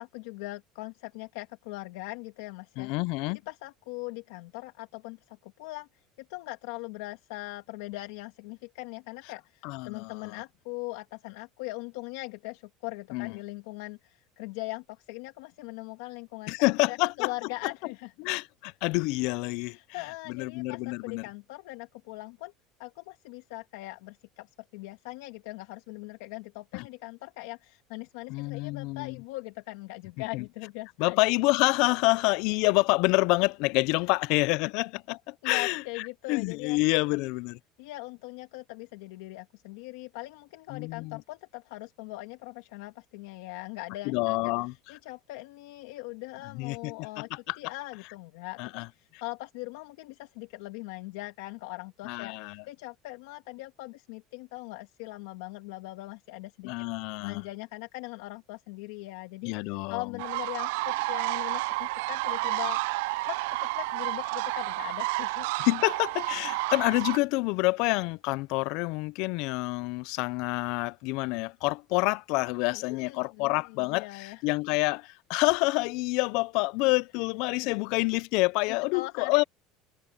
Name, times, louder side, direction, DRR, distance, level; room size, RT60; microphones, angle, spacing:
voice 1, 0.0-2.9 3.3-18.1 19.6-22.5 22.8-31.2 35.4-36.8 37.8-56.7 57.0-62.8 63.2-65.6 72.7-74.4 77.6-77.7 78.7-79.4, left 21 dB, 85° left, 1.7 m, -41 dB
voice 2, 2.8-3.4 9.6-10.4 13.1-13.4 16.5-17.3 18.2-19.8 20.3-21.3 26.7-26.9 28.3-29.2 30.3-30.5 31.0-37.6 40.7-41.2 44.1-45.0 46.5-47.6 48.6-48.9 52.0-52.6 56.6-57.4 59.4-60.1 65.6-79.4, left 25 dB, 60° left, 0.4 m, -28 dB
sound 1, 60.2-67.2, right 22 dB, 80° right, 0.4 m, -31 dB
cardioid pair, 170°, 0 cm